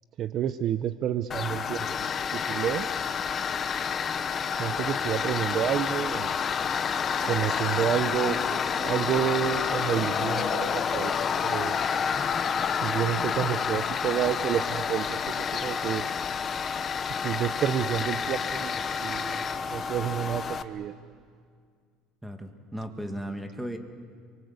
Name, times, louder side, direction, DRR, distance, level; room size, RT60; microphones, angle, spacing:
voice 1, 0.2-2.9 4.5-6.4 7.2-11.1 11.4-11.8 12.8-16.0 17.1-20.9, right 10 dB, 40° right, 11 dB, 0.8 m, -29 dB
Tools, 1.3-20.6, left 6 dB, 30° left, 1.0 m, -29 dB
Male speech man speaking, 9.6-10.8, left 6 dB, 70° left, 3.9 m, -53 dB
voice 2, 22.2-23.8, equal, 5° right, 5 dB, 1.8 m, -36 dB
30.0 x 23.5 x 8.3 m, 2.1 s
cardioid pair, 145°, 0 cm